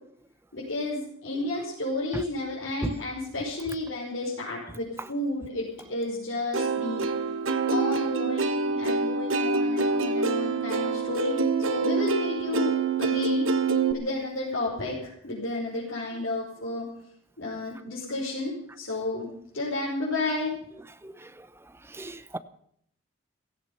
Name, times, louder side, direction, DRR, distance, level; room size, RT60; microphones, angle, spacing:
voice 1, 0.5-7.1 7.6-11.4 11.6-12.7 13.0-13.5 13.9-16.8 17.4-19.3 19.5-20.5, left 2 dB, 70° left, 5.5 m, -31 dB
Plucked string instrument, 6.5-13.9, right 4 dB, 80° right, 1.3 m, -26 dB
voice 2, 21.0-22.4, right 1 dB, 10° right, 0.8 m, -37 dB
17.0 x 15.0 x 5.7 m
head